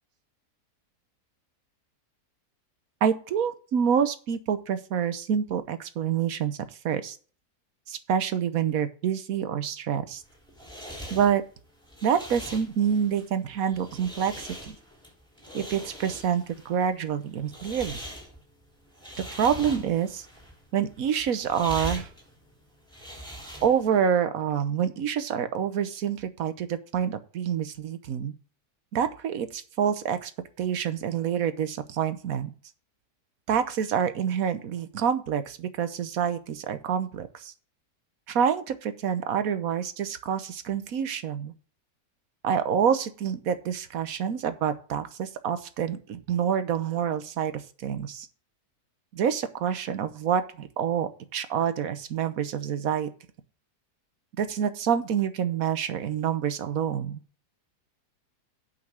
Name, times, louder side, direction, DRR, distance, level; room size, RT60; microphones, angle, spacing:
voice 1, 3.0-6.6 6.8-7.2 7.9-10.2 11.1-11.4 12.0-14.8 15.5-18.0 19.2-20.3 20.7-22.1 23.6-28.3 28.9-30.3 30.6-32.5 33.5-37.5 38.3-41.5 42.4-47.5 47.8-48.3 49.1-53.1 54.4-57.2, right 8 dB, 60° right, 11 dB, 1.3 m, -27 dB
sound 1, 10.1-24.0, equal, 5° left, 3.4 m, -42 dB
8.7 x 5.8 x 6.3 m, 0.39 s
omnidirectional pair, 1.7 m